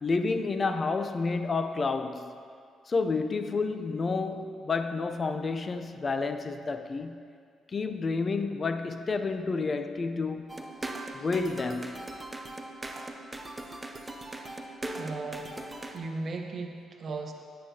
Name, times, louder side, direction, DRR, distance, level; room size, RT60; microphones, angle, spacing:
voice 1, 0.0-2.3 2.9-7.2 7.7-10.5 11.1-12.0, left 4 dB, 35° left, 0.5 m, -30 dB
sound 1, 10.5-16.0, right 2 dB, 15° right, 0.7 m, -40 dB
voice 2, 15.0-15.5 15.9-17.3, right 3 dB, 50° right, 0.9 m, -36 dB
9.6 x 9.5 x 2.8 m
cardioid pair, 90°, 0 cm